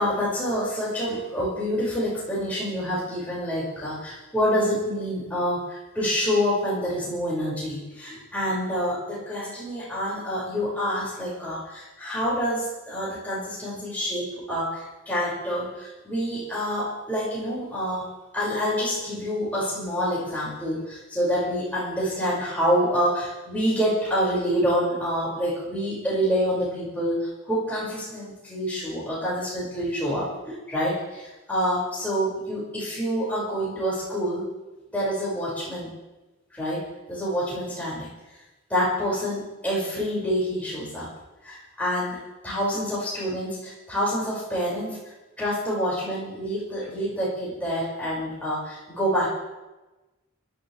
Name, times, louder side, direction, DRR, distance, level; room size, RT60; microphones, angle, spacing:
voice 1, 0.0-34.4 34.9-35.9 36.5-38.1 38.7-41.1 41.4-45.0 45.4-49.3, equal, 5° left, -8 dB, 6.2 m, -27 dB
29.5 x 12.0 x 3.5 m, 1.1 s
head